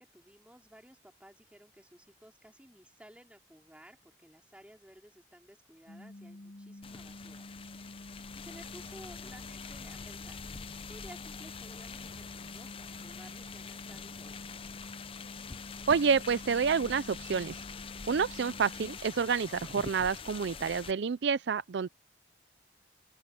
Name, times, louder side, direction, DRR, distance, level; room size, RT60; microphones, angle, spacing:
voice 1, 0.0-8.0 8.4-10.4 10.9-14.4, equal, 5° right, 4.0 m, -55 dB
sound 1, 5.9-19.0, left 1 dB, 50° left, 4.1 m, -49 dB
sound 2, 6.8-20.9, left 5 dB, 30° left, 0.6 m, -45 dB
voice 2, 15.9-17.6 18.1-21.9, right 6 dB, 70° right, 0.4 m, -28 dB
open air
head